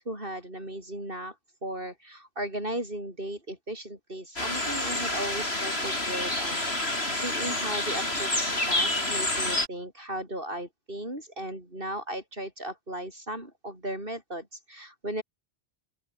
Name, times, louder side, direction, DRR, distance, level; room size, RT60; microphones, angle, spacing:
voice 1, 0.0-1.4 1.6-15.2, right 1 dB, 60° right, 8.3 m, -36 dB
sound 1, 4.4-9.7, left 1 dB, 80° left, 6.6 m, -28 dB
open air
omnidirectional pair, 1.0 m